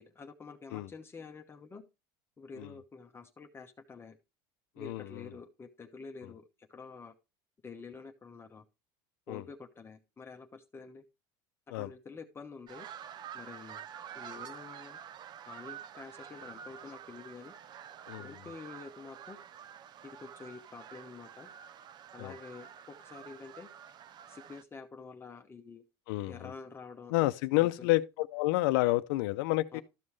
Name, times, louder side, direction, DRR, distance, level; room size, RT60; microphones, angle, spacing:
voice 1, 0.0-1.8 2.4-4.2 4.8-7.1 7.6-8.6 9.3-11.0 11.7-12.9 13.3-13.9 14.1-15.0 15.5-17.5 18.2-19.4 20.0-21.5 22.1-23.7 24.3-25.8 26.3-27.9 29.7-29.8, left 4 dB, 20° left, 0.9 m, -48 dB
voice 2, 4.8-5.2 9.3-9.4 11.7-11.9 18.1-18.3 22.2-22.3 26.1-26.5 27.1-29.8, left 19 dB, 75° left, 0.6 m, -29 dB
sound 1, 12.7-24.6, right 9 dB, 40° right, 0.5 m, -48 dB
13.0 x 5.4 x 3.2 m
supercardioid pair, 110°, 11 cm